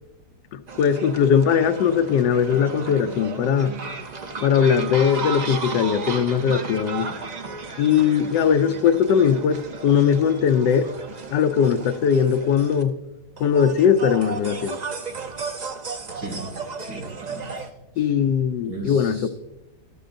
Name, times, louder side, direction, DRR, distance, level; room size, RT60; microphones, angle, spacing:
voice 1, 0.5-3.7 4.4-7.1 7.8-10.9 11.3-13.0 13.4-14.8 18.0-19.3, left 7 dB, 85° left, 1.3 m, -20 dB
sound 1, 0.7-12.8 13.4-17.7, right 4 dB, 50° right, 0.5 m, -34 dB
voice 2, 16.2-16.5 16.8-17.7 18.0-18.1 18.7-19.3, right 2 dB, 80° right, 3.6 m, -36 dB
13.5 x 12.5 x 2.6 m
omnidirectional pair, 1.8 m